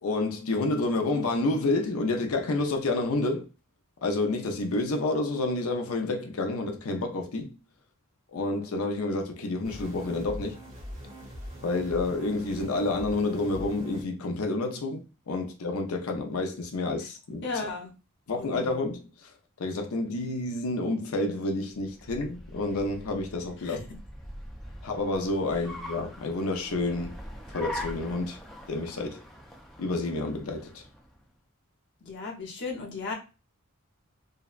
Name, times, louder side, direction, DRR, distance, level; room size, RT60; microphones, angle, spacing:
voice 1, 0.0-3.5 4.0-7.6 8.3-10.6 11.6-17.5 18.3-19.0 19.6-23.8 24.8-27.2 27.5-28.4 28.7-29.2 29.8-30.8, left 2 dB, 90° left, 0.6 m, -29 dB
sound 1, 9.6-14.0, equal, 35° right, 0.9 m, -42 dB
voice 2, 17.4-17.9 18.4-18.7 23.6-23.8 32.0-33.1, left 4 dB, 55° left, 0.8 m, -35 dB
Car, 21.7-31.2, left 1 dB, ahead, 0.4 m, -43 dB
2.6 x 2.1 x 2.4 m
head